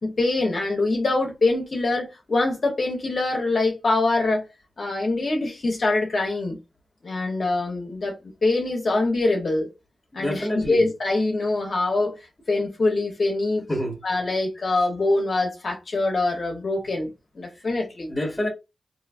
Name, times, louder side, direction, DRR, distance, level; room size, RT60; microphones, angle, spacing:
voice 1, 0.0-4.5 4.8-6.6 7.0-8.2 8.4-9.7 10.1-12.1 12.5-13.7 14.0-18.1, left 2 dB, 60° left, 0.9 m, -24 dB
voice 2, 10.1-10.8 13.7-14.0 18.1-18.5, equal, 20° left, 1.3 m, -27 dB
3.0 x 2.8 x 2.4 m
cardioid pair, 45°, 0 cm